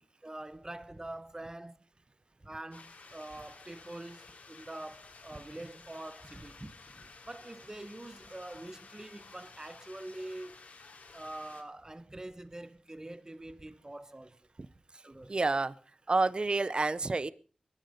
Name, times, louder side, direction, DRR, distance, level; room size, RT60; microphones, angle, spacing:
voice 1, 0.2-1.8 2.4-10.6 11.1-14.4 15.0-15.3, right 1 dB, 25° right, 1.3 m, -45 dB
sound 1, 2.7-11.6, left 4 dB, 85° left, 3.0 m, -54 dB
voice 2, 15.3-15.7 16.1-17.3, right 3 dB, 45° right, 0.7 m, -29 dB
20.5 x 11.5 x 5.4 m
wide cardioid pair, 60°, 2 cm